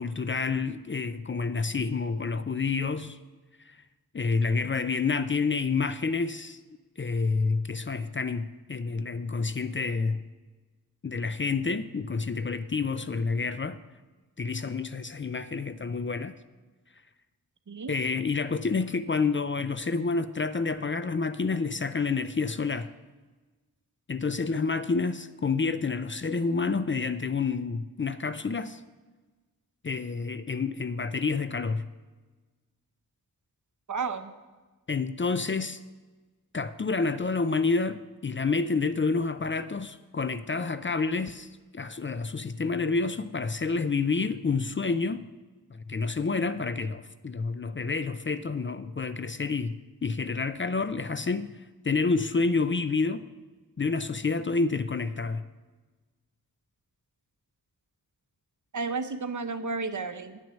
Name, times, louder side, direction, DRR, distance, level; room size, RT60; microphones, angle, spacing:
voice 1, 0.0-3.2 3.7-3.8 4.1-6.6 7.0-10.2 11.0-13.8 14.4-16.4 17.9-22.9 24.1-28.8 29.8-31.9 34.9-35.8 36.5-41.5 41.7-45.3 45.7-49.8 50.0-51.5 51.8-53.2 53.8-55.5, left 4 dB, 35° left, 0.5 m, -29 dB
voice 2, 33.9-34.3 58.7-60.4, right 4 dB, 55° right, 0.8 m, -32 dB
10.0 x 6.2 x 7.2 m
cardioid pair, 50°, 37 cm